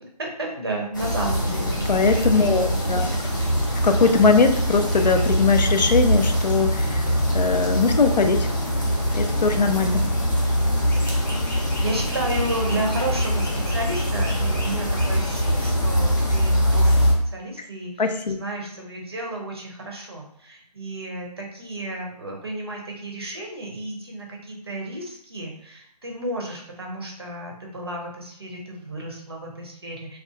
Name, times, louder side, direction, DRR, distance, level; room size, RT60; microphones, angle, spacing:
voice 1, 0.0-2.2 2.5-3.5 11.5-30.2, right 1 dB, 35° right, 0 dB, 0.5 m, -32 dB
sound 1, 0.9-17.1, equal, 30° left, 0.5 m, -23 dB
voice 2, 1.9-3.1 3.8-8.5 9.1-10.0 18.0-18.4, left 4 dB, 80° left, 6 dB, 0.4 m, -20 dB
2.7 x 2.3 x 2.2 m, 0.68 s
figure-of-eight pair, 160°, 21 cm